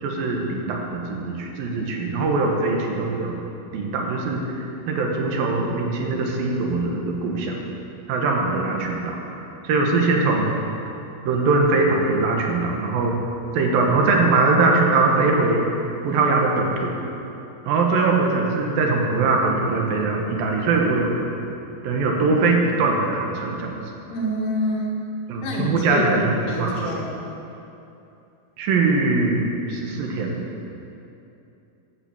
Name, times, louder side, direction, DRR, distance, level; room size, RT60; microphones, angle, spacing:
voice 1, 0.0-3.3 3.7-7.6 8.1-10.5 11.3-13.2 13.5-15.7 16.0-16.9 17.7-21.3 21.8-23.9 25.3-26.9 28.6-30.4, right 3 dB, 70° right, 0 dB, 2.8 m, -22 dB
voice 2, 24.1-25.0 25.4-26.1 26.5-27.1, left 1 dB, 90° left, -4 dB, 3.9 m, -26 dB
14.0 x 6.0 x 6.8 m, 2.8 s
omnidirectional pair, 4.6 m